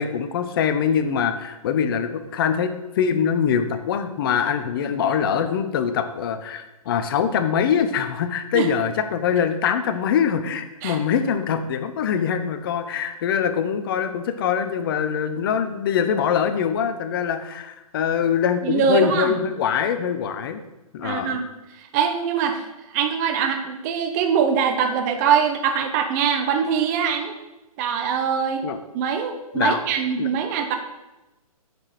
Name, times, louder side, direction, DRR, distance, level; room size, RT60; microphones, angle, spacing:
voice 1, 0.0-20.6 20.9-21.4 28.6-28.8 29.5-29.8 30.2-30.3, left 7 dB, 40° left, 9 dB, 0.9 m, -23 dB
voice 2, 18.6-19.3 21.0-21.5 21.7-27.3 27.8-28.6 28.9-30.8, right 7 dB, 30° right, 6 dB, 0.9 m, -23 dB
9.7 x 6.2 x 5.0 m, 1.0 s
figure-of-eight pair, 130°, 19 cm